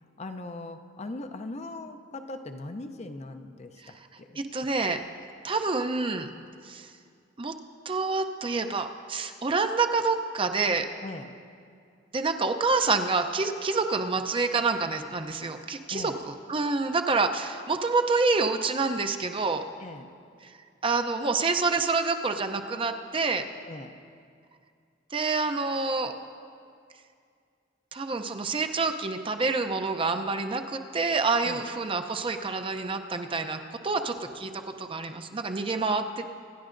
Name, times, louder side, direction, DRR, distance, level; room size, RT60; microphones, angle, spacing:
voice 1, 0.2-4.4 11.0-11.4 15.9-16.2 19.8-20.1 23.6-24.0 31.4-31.6, left 2 dB, 35° left, 7 dB, 0.5 m, -40 dB
voice 2, 4.4-5.0 5.4-6.3 6.6-6.9 7.4-7.5 7.9-10.9 12.1-19.6 20.8-23.4 25.1-26.1 27.9-36.3, right 4 dB, 30° right, 6 dB, 0.5 m, -27 dB
26.0 x 10.5 x 2.6 m, 2.3 s
head